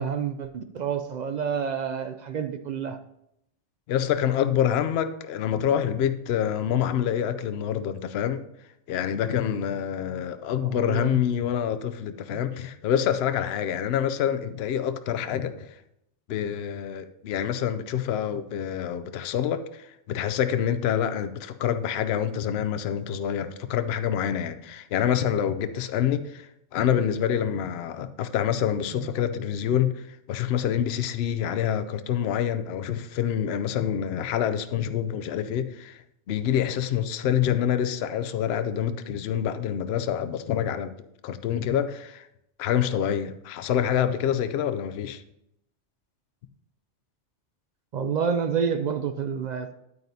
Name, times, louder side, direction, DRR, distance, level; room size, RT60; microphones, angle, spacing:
voice 1, 0.0-3.0 10.6-11.2 12.3-12.4 29.0-29.1 47.9-49.7, right 6 dB, 65° right, 0.4 m, -29 dB
voice 2, 3.9-8.4 8.9-15.8 16.3-36.0 36.3-40.9 41.2-42.3 42.6-45.2, left 9 dB, 65° left, 0.8 m, -26 dB
9.6 x 9.0 x 2.7 m
omnidirectional pair, 1.2 m